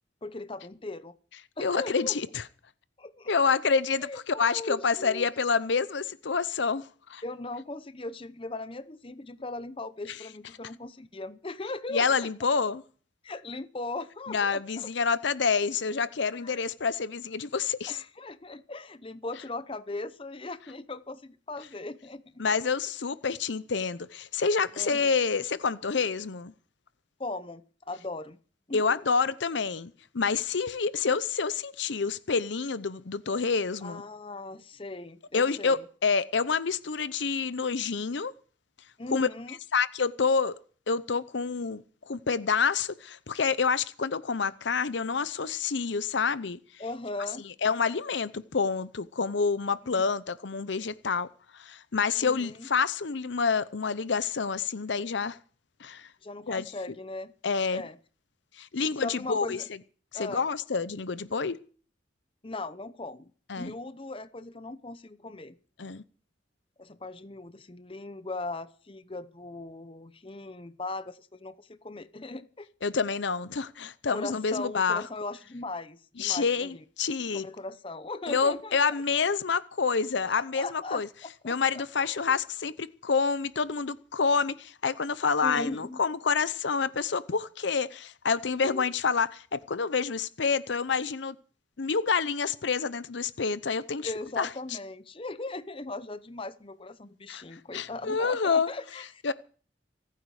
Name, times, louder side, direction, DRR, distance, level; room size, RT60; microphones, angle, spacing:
voice 1, 0.2-1.2 1.6-2.2 3.0-3.3 4.0-5.3 7.2-12.3 13.2-15.1 16.4-16.6 17.9-22.4 24.8-25.1 27.2-28.4 28.7-29.0 33.8-35.8 39.0-39.6 46.8-47.4 50.0-50.1 52.2-52.7 56.2-57.3 57.7-58.0 58.8-59.7 60.1-60.4 62.4-63.3 63.6-65.6 66.8-72.7 74.1-76.8 77.3-79.0 80.3-82.4 85.4-86.0 88.6-88.9 94.0-99.1, left 2 dB, 30° left, 0.7 m, -39 dB
voice 2, 1.6-2.4 3.3-6.8 7.1-7.2 10.1-10.2 11.9-12.8 14.3-18.0 22.4-26.5 28.7-34.0 35.3-38.3 39.1-39.3 39.7-40.5 40.9-46.6 47.6-51.3 51.5-55.4 55.8-56.1 56.5-56.7 57.4-57.8 58.6-59.6 60.1-61.6 63.5-63.7 65.8-66.0 72.8-75.0 76.2-77.5 78.3-81.1 81.4-91.4 91.8-94.1 94.4-94.5 97.3-97.4 97.7-98.7 99.2-99.3, left 5 dB, 70° left, 0.7 m, -28 dB
26.5 x 9.4 x 4.9 m
head